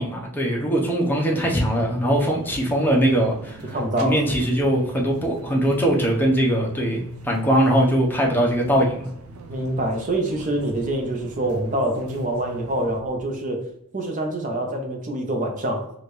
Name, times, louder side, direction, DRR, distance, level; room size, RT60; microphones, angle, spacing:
voice 1, 0.0-3.6 4.0-9.1, right 1 dB, 10° left, -2 dB, 0.8 m, -21 dB
sound 1, 1.4-13.0, right 1 dB, 80° right, 0.5 m, -42 dB
voice 2, 3.7-4.3 9.5-13.6 13.9-15.9, right 1 dB, 35° right, 1 dB, 0.9 m, -25 dB
4.9 x 2.5 x 3.1 m, 0.73 s
head